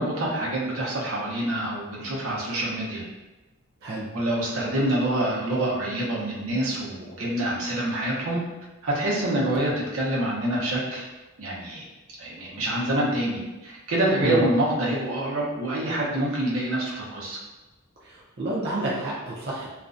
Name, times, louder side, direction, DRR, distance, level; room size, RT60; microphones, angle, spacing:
voice 1, 0.0-3.0 4.1-8.4 8.8-11.1 11.4-11.8 12.2-17.4, right 1 dB, 80° right, -5 dB, 0.7 m, -26 dB
voice 2, 18.0-19.7, right 2 dB, 50° right, -6 dB, 0.4 m, -29 dB
2.4 x 2.1 x 2.4 m, 1.1 s
head